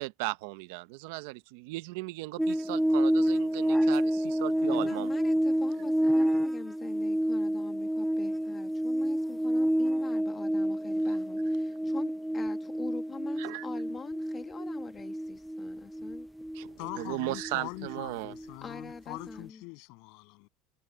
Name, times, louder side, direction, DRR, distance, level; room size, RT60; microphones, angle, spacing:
voice 1, 0.0-5.1 13.4-13.7 16.5-18.3, right 21 dB, 85° right, 0.7 m, -37 dB
sound 1, 2.4-18.9 19.2-19.4, equal, ahead, 0.5 m, -29 dB
voice 2, 4.7-16.3 18.6-19.6, left 5 dB, 20° left, 1.3 m, -44 dB
voice 3, 16.8-20.5, left 31 dB, 65° left, 7.9 m, -43 dB
cardioid pair, 165°, 0 cm